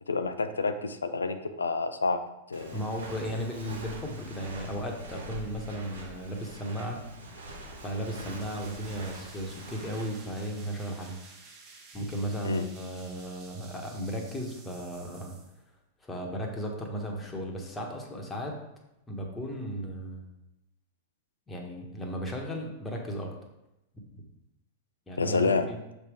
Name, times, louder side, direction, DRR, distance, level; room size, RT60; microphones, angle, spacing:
voice 1, 0.1-2.2 2.5-2.8 12.4-12.7 25.2-25.7, left 4 dB, 80° left, 9 dB, 0.4 m, -28 dB
Walk footsteps, 2.5-10.2, right 1 dB, 75° right, 1.2 m, -44 dB
voice 2, 2.7-7.0 7.8-11.2 11.9-15.3 16.0-18.5 19.1-20.3 21.5-23.3 24.2-24.3 25.1-25.8, equal, 15° left, 0 dB, 1.3 m, -35 dB
sound 1, 8.4-15.6, right 4 dB, 35° right, 1.4 m, -52 dB
6.4 x 3.5 x 5.0 m, 0.90 s
figure-of-eight pair, 95°, 0 cm